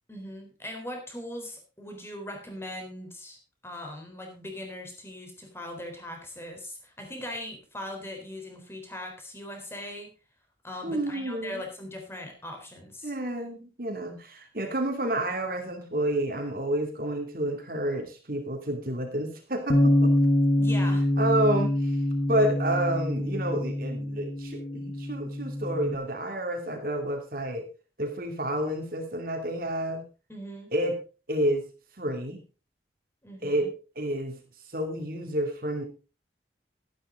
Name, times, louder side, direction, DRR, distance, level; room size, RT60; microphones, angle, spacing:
voice 1, 0.1-3.4 3.6-10.1 10.6-13.1 20.6-21.1 30.3-30.7 33.2-33.7, left 1 dB, 15° left, 3 dB, 3.7 m, -40 dB
voice 2, 10.8-11.6 13.0-20.1 21.2-22.0 22.3-27.7 28.0-30.0 30.7-30.9 31.3-31.6 32.0-32.4 33.4-33.7 34.0-34.4 34.7-35.8, right 1 dB, 55° right, 3 dB, 2.7 m, -29 dB
Bass guitar, 19.7-25.9, left 1 dB, 50° left, 1.6 m, -25 dB
13.0 x 11.5 x 3.9 m, 0.33 s
head